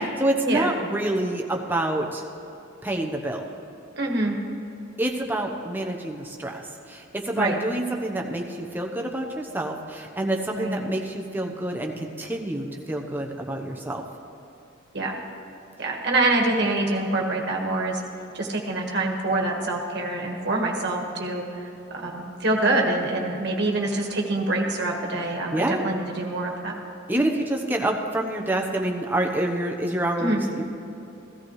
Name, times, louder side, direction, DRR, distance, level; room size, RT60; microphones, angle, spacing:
voice 1, 0.2-2.2 2.8-3.5 5.0-6.6 6.9-14.0 25.5-25.8 27.1-30.6, right 1 dB, 10° right, 1 dB, 0.9 m, -27 dB
voice 2, 4.0-4.4 7.3-7.6 10.6-10.8 14.9-15.1 15.8-18.0 18.3-21.4 21.9-26.7 30.2-30.4, right 2 dB, 60° right, 1 dB, 1.6 m, -25 dB
16.0 x 13.5 x 3.2 m, 2.9 s
head